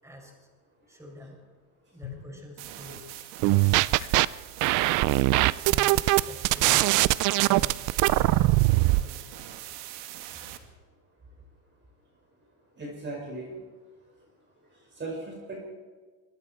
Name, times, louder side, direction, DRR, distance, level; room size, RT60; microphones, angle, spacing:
voice 1, 0.0-0.5 0.9-1.5 1.9-3.1 3.4-4.0 5.2-9.3 9.6-9.8 10.1-10.6, left 1 dB, 5° right, 0 dB, 6.7 m, -47 dB
sound 1, 1.9-4.4, left 8 dB, 85° left, 6.3 m, -47 dB
sound 2, 2.6-10.6, right 12 dB, 60° right, 2.5 m, -42 dB
sound 3, 3.4-4.3 4.6-9.0, right 19 dB, 40° right, 0.6 m, -21 dB
voice 2, 12.8-13.6 15.0-15.6, right 2 dB, 25° right, 0 dB, 5.6 m, -37 dB
26.0 x 23.0 x 4.6 m, 1.4 s
supercardioid pair, 125°, 46 cm